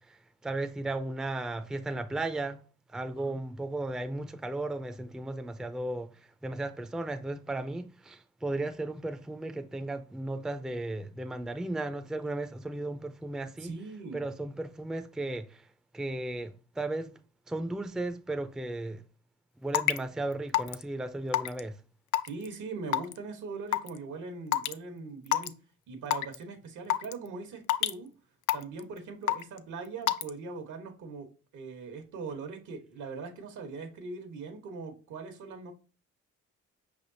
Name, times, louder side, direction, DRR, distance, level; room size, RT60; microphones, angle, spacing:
voice 1, 0.1-2.6 2.9-6.1 6.4-13.7 14.1-15.6 15.9-17.1 17.5-19.0 19.6-21.8, right 2 dB, ahead, 0.4 m, -35 dB
voice 2, 13.6-14.3 22.2-25.5 25.9-28.1 28.5-35.7, right 4 dB, 80° right, 1.2 m, -41 dB
Raindrop / Water tap faucet / Drip, 19.7-20.0 20.5-20.8 21.3-21.6 22.1-22.5 22.9-23.1 23.7-23.9 24.5-24.7 25.3-25.5 26.1-26.3 26.9-27.1 27.7-27.9 28.5-28.8 29.3-29.6 30.1-30.3, left 13 dB, 80° left, 0.5 m, -26 dB
5.4 x 3.4 x 2.6 m
cardioid pair, 90°, 30 cm